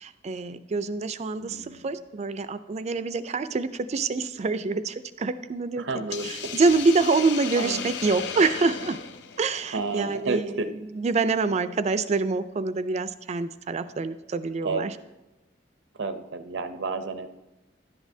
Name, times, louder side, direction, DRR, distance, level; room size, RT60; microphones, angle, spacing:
voice 1, 0.0-5.8 6.2-9.0 9.4-15.0, right 4 dB, 40° right, 12 dB, 0.4 m, -26 dB
voice 2, 1.4-1.9 5.8-6.6 7.6-7.9 9.7-10.7 14.6-14.9 15.9-17.3, right 3 dB, 90° right, 9 dB, 0.6 m, -31 dB
Hiss, 6.1-10.4, left 7 dB, 70° left, 0.5 m, -36 dB
11.0 x 8.2 x 2.7 m, 1.0 s
head